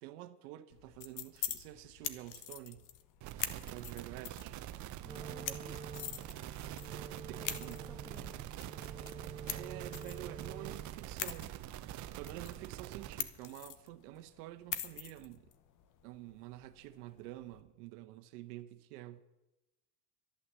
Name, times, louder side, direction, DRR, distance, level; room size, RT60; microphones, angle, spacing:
voice 1, 0.0-2.9 3.6-4.6 7.3-7.8 9.5-11.5 12.2-15.5 16.0-19.2, right 15 dB, 75° right, 1.1 m, -48 dB
sound 1, 0.7-17.6, left 10 dB, 40° left, 1.1 m, -45 dB
sound 2, 3.2-13.2, right 13 dB, 40° right, 0.7 m, -45 dB
voice 2, 5.0-6.0 7.4-8.5, equal, 5° left, 0.7 m, -56 dB
Wind instrument woodwind instrument, 5.0-11.0, right 4 dB, 15° right, 1.3 m, -49 dB
11.5 x 11.0 x 7.4 m
supercardioid pair, 120°, 46 cm